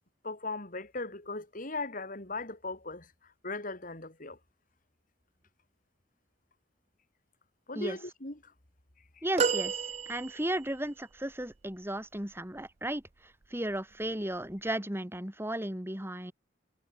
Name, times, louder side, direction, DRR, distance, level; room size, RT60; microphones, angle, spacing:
voice 1, 0.2-3.1 3.4-4.4 7.7-8.4, left 3 dB, 45° left, 4.3 m, -38 dB
voice 2, 9.2-9.8 10.1-13.0 13.5-16.3, right 1 dB, 15° right, 3.3 m, -35 dB
sound 1, 9.4-10.8 11.5-11.6, right 6 dB, 35° right, 0.5 m, -31 dB
head